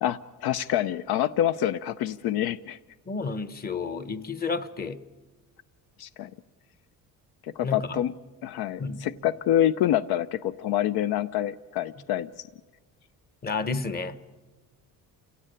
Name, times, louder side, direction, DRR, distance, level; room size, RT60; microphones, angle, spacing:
voice 1, 0.0-2.8 6.0-6.3 7.4-8.1 8.4-12.5, left 11 dB, 85° left, 14 dB, 0.7 m, -27 dB
voice 2, 3.1-5.0 7.6-8.0 8.8-9.1 13.4-14.2, left 4 dB, 25° left, 13 dB, 0.9 m, -31 dB
29.0 x 16.5 x 9.0 m, 1.3 s
cardioid pair, 160°, 36 cm